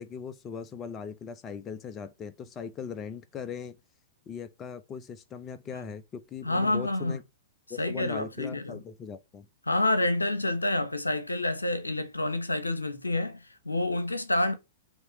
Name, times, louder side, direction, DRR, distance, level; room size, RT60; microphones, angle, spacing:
voice 1, 0.0-3.8 4.3-7.2 7.7-9.5, left 6 dB, 25° left, 0.8 m, -39 dB
voice 2, 6.4-7.2 7.8-8.8 9.7-14.5, left 2 dB, 90° left, 0.9 m, -28 dB
8.2 x 3.1 x 5.0 m
figure-of-eight pair, 105°, 0 cm